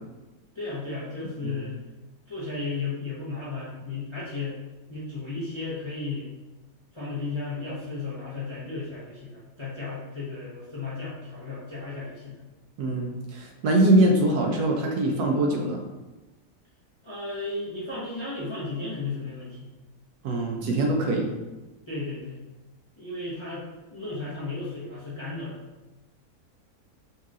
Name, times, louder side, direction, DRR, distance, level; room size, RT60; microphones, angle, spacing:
voice 1, 0.5-1.7 2.3-4.6 4.9-6.3 6.9-12.4 17.0-19.7 21.9-22.4 23.0-23.6 23.9-25.6, left 3 dB, 25° left, -9 dB, 0.7 m, -34 dB
voice 2, 12.8-15.8 20.2-21.3, right 1 dB, 75° right, 1 dB, 1.2 m, -23 dB
5.3 x 2.9 x 2.5 m, 1.1 s
omnidirectional pair, 1.8 m